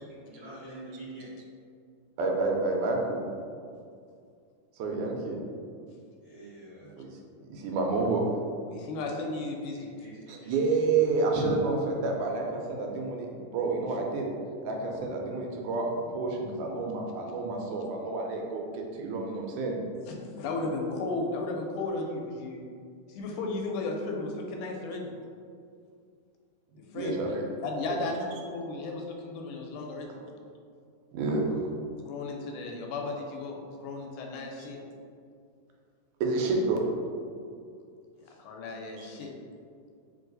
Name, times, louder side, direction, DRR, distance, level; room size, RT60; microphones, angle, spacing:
voice 1, 0.2-1.3 6.2-6.9 9.7-10.5, right 2 dB, 60° right, -11 dB, 1.3 m, -46 dB
voice 2, 2.2-3.2 4.8-5.4 6.8-7.1 7.4-8.2 10.3-13.3 13.5-14.3 14.6-19.8 26.9-27.4 27.8-28.0 31.1-31.5 36.2-36.8 39.0-39.1, right 3 dB, 80° right, 0 dB, 2.0 m, -29 dB
voice 3, 8.7-9.9 20.1-22.6 23.1-25.1 26.9-27.2 27.6-30.1 32.1-34.8 38.4-39.3, left 3 dB, 80° left, 1 dB, 2.0 m, -34 dB
4.6 x 3.0 x 3.8 m, 2.3 s
omnidirectional pair, 3.6 m